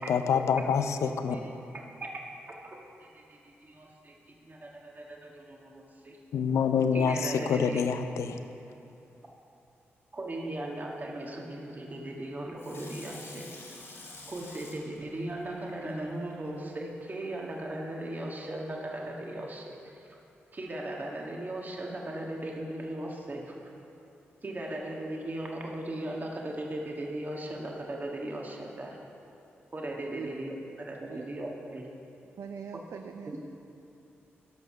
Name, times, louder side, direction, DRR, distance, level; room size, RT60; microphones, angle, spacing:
voice 1, 0.1-1.4 6.3-8.4, left 6 dB, 80° left, 9 dB, 0.5 m, -26 dB
voice 2, 3.0-6.2 6.9-7.9 10.1-13.5 14.0-20.1 20.5-23.6 24.4-29.0 29.7-31.9 33.3-33.4, right 1 dB, 35° right, -1 dB, 1.5 m, -38 dB
Water tap faucet / Sink (filling or washing), 12.6-16.3 16.8-16.9, left 2 dB, 60° left, 2.6 m, -48 dB
voice 3, 32.4-33.4, right 7 dB, 70° right, 7 dB, 0.4 m, -41 dB
12.0 x 5.5 x 6.4 m, 2.7 s
supercardioid pair, 50°, 5 cm